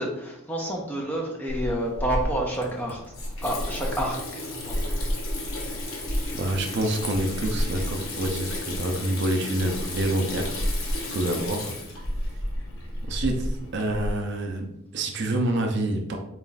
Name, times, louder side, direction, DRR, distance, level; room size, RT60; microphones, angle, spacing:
voice 1, 0.0-3.0 3.4-4.4 4.7-4.8, right 1 dB, 10° left, -1 dB, 0.6 m, -29 dB
Water tap faucet / Sink (filling or washing), 1.5-14.1, left 1 dB, 65° left, 0.9 m, -31 dB
voice 2, 6.3-10.6 11.1-11.7 13.0-16.2, right 1 dB, 50° right, 3 dB, 0.5 m, -27 dB
4.2 x 2.4 x 3.9 m, 0.84 s
head